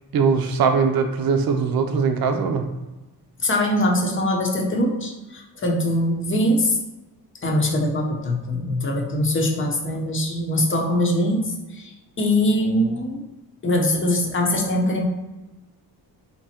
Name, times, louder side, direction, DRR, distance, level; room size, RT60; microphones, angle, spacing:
voice 1, 0.1-2.7, right 5 dB, 65° right, 5 dB, 0.6 m, -21 dB
voice 2, 3.4-6.8 7.4-13.2 13.6-15.0, left 1 dB, 30° left, 1 dB, 0.8 m, -22 dB
3.7 x 2.9 x 4.3 m, 1.1 s
wide cardioid pair, 160°, 39 cm